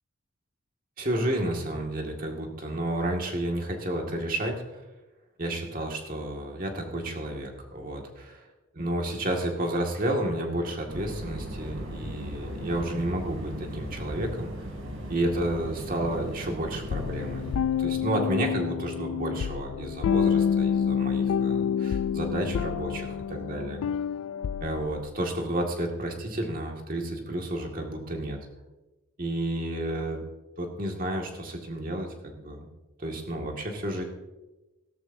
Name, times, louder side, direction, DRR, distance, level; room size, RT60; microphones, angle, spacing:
voice 1, 1.0-4.8 5.4-8.5 8.7-14.7 15.1-17.5 17.8-23.8 24.6-28.4 29.2-30.2 30.6-32.7 33.0-34.0, right 1 dB, 40° right, 1 dB, 2.0 m, -31 dB
sound 1, 10.9-17.6, equal, 80° right, 3.2 m, -37 dB
sound 2, 16.9-25.0, left 7 dB, 90° left, 0.3 m, -28 dB
17.0 x 13.0 x 2.7 m, 1.1 s
head